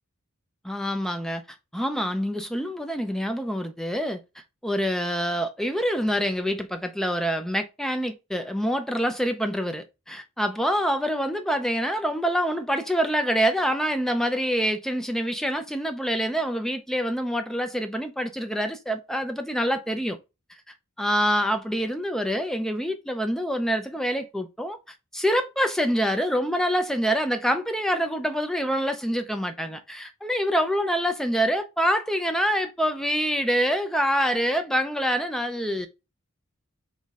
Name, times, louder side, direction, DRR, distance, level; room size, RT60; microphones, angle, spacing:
voice 1, 0.6-1.4 1.7-4.2 4.6-20.2 21.0-24.8 25.1-35.9, equal, ahead, 0.4 m, -26 dB
4.1 x 3.1 x 3.5 m
head